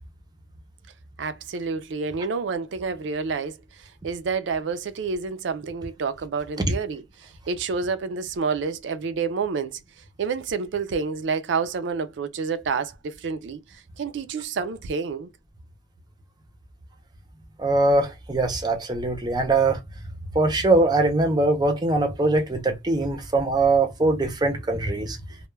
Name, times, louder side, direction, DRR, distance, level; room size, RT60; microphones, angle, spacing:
voice 1, 1.2-9.8 10.2-15.3, right 5 dB, 75° right, 0.4 m, -29 dB
voice 2, 17.6-19.8 20.3-25.2, right 2 dB, 20° right, 0.5 m, -22 dB
2.2 x 2.1 x 3.0 m
head